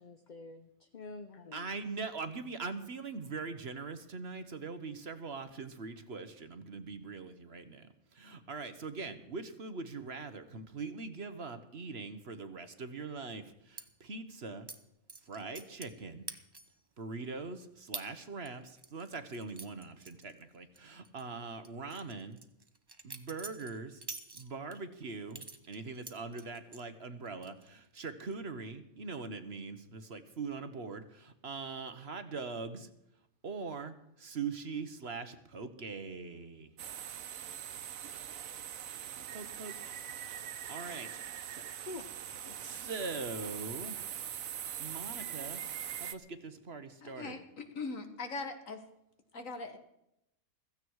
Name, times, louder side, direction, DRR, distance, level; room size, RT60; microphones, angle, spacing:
voice 1, 0.0-1.7 41.9-42.1 42.4-42.8, left 3 dB, 40° left, 8 dB, 0.8 m, -47 dB
voice 2, 1.5-14.7 15.3-16.3 17.0-22.4 23.0-24.0 24.3-32.9 33.4-36.7 39.3-39.8 40.3-41.2 41.5-41.6 42.6-44.0 44.8-45.6 46.0-47.3, right 4 dB, 50° right, 10 dB, 1.3 m, -42 dB
sound 1, 13.8-13.9 14.7-14.8 15.1-16.0 16.3-16.8 17.2-17.3 17.9-18.1 18.5-20.8 21.0-21.2 21.6-24.8 25.3-26.8 27.2-27.7 27.9-28.3, right 3 dB, 20° right, 0.8 m, -46 dB
sound 2, 36.8-46.1, right 9 dB, 75° right, 1.3 m, -42 dB
voice 3, 47.0-48.8 49.3-49.8, left 3 dB, 70° left, 7 dB, 2.1 m, -41 dB
16.0 x 15.0 x 4.7 m, 0.82 s
omnidirectional pair, 1.5 m